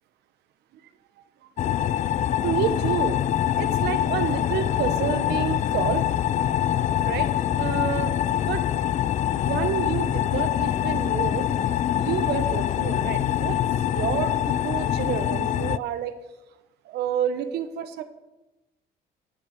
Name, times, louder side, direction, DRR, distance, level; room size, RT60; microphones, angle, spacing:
sound 1, 1.6-15.8, left 11 dB, 45° left, 0.4 m, -24 dB
voice 1, 2.4-3.2 3.6-6.1 7.0-7.3 7.6-8.7 9.3-11.5 12.0-13.6 13.9-16.1 16.8-18.0, right 9 dB, 75° right, 10 dB, 1.1 m, -29 dB
11.5 x 7.0 x 6.5 m, 1.0 s
cardioid pair, 110°, 17 cm